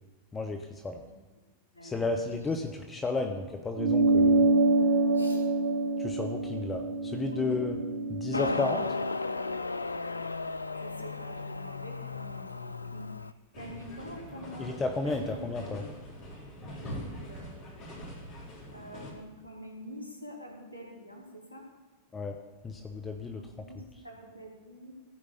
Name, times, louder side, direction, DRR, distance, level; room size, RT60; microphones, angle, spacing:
voice 1, 0.3-1.0 1.8-4.4 6.0-7.8 8.1-8.9 14.6-15.8 22.1-22.4 22.6-23.4, left 3 dB, 15° left, 5 dB, 0.9 m, -32 dB
voice 2, 1.7-2.3 5.1-5.4 7.3-7.6 10.7-14.8 15.0-15.4 16.7-17.8 18.7-21.6 23.4-24.9, equal, 85° right, 0 dB, 2.7 m, -46 dB
sound 1, 3.8-8.6, right 2 dB, 50° right, 0.8 m, -26 dB
Motorcycle, 8.3-13.3, left 3 dB, 80° left, 0.3 m, -34 dB
sound 2, 13.5-19.1, equal, 40° left, 3.6 m, -43 dB
14.5 x 5.1 x 6.7 m, 1.3 s
figure-of-eight pair, 90°, 0 cm